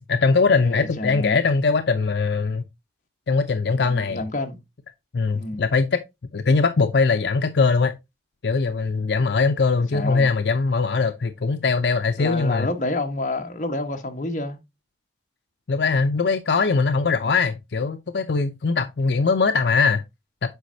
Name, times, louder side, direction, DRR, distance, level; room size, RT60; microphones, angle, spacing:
voice 1, 0.0-2.6 3.3-4.2 5.1-6.0 6.3-8.0 8.4-12.7 15.7-20.0, left 4 dB, 75° left, 0.6 m, -21 dB
voice 2, 0.6-1.4 3.7-4.6 5.3-5.6 9.9-10.3 12.2-14.6 17.1-17.3, left 2 dB, 45° left, 1.2 m, -29 dB
8.0 x 5.2 x 2.7 m
head